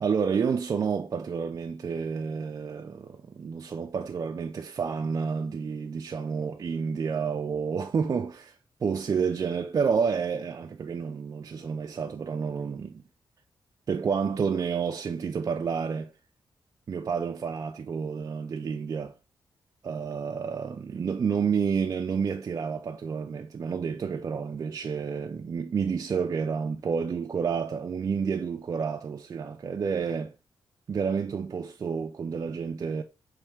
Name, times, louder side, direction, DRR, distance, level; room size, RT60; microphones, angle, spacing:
voice 1, 0.0-13.0 13.9-16.1 16.9-19.1 19.8-30.3 30.9-33.0, right 6 dB, 40° right, 0.4 m, -30 dB
4.5 x 3.1 x 3.4 m
wide cardioid pair, 140°, 9 cm